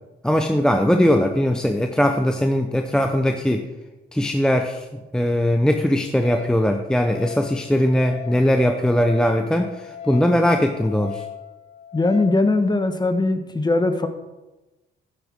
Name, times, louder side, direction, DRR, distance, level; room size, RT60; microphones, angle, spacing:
voice 1, 0.2-3.7 4.1-11.2, equal, 5° left, 4 dB, 0.7 m, -20 dB
Wind instrument woodwind instrument, 6.2-12.4, left 9 dB, 60° left, 3.5 m, -39 dB
voice 2, 11.9-14.1, left 2 dB, 20° left, 8 dB, 1.2 m, -20 dB
11.5 x 10.0 x 3.6 m, 1.1 s
cardioid pair, 90°, 20 cm